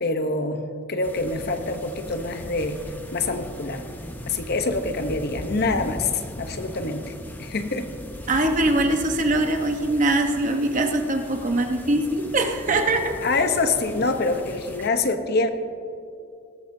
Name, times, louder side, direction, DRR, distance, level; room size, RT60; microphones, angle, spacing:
voice 1, 0.0-3.8 4.3-7.1 7.4-7.9 13.2-15.5, left 3 dB, 50° left, 7 dB, 0.9 m, -25 dB
sound 1, 1.0-14.9, equal, 10° left, 0.7 m, -39 dB
voice 2, 8.3-13.2, right 2 dB, 40° right, 4 dB, 1.1 m, -22 dB
19.0 x 13.0 x 2.7 m, 2.6 s
head